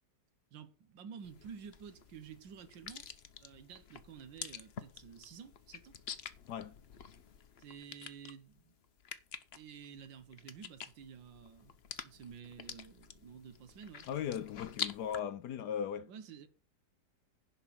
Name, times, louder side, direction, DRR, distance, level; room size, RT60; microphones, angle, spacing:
voice 1, 0.5-3.1 3.4-6.0 7.6-8.7 9.5-11.8 12.0-14.1 16.1-16.5, right 7 dB, 80° right, 1.8 m, -51 dB
sound 1, 1.2-15.2, left 7 dB, 50° left, 0.8 m, -47 dB
voice 2, 14.1-16.1, left 8 dB, 70° left, 1.2 m, -38 dB
11.0 x 4.5 x 7.3 m
omnidirectional pair, 2.0 m